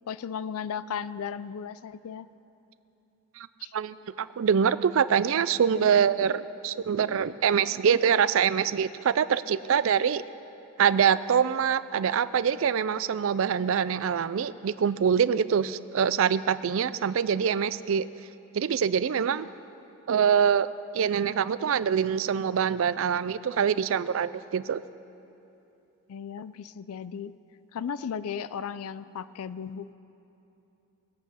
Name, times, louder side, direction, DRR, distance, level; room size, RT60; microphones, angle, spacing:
voice 1, 0.1-2.3 3.6-3.7 26.1-27.3 27.7-29.9, left 7 dB, 90° left, 16 dB, 0.4 m, -35 dB
voice 2, 3.7-10.2 10.8-18.1 18.5-19.5 20.1-20.7 20.9-24.8, right 7 dB, 70° right, 16 dB, 0.4 m, -24 dB
21.0 x 8.2 x 5.6 m, 2.9 s
head